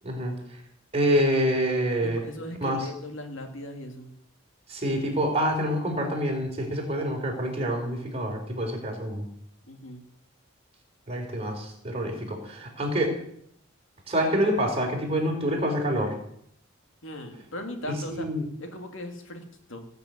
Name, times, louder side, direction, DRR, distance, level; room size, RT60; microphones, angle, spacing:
voice 1, 0.0-0.6 0.9-2.2 2.6-2.9 4.7-9.2 11.1-13.1 14.1-16.1 18.1-18.4, equal, 30° right, 0 dB, 4.4 m, -27 dB
voice 2, 2.0-4.1 9.7-10.0 17.0-18.3 18.6-19.9, left 1 dB, 65° left, 5 dB, 2.4 m, -38 dB
18.5 x 6.8 x 9.4 m, 0.71 s
head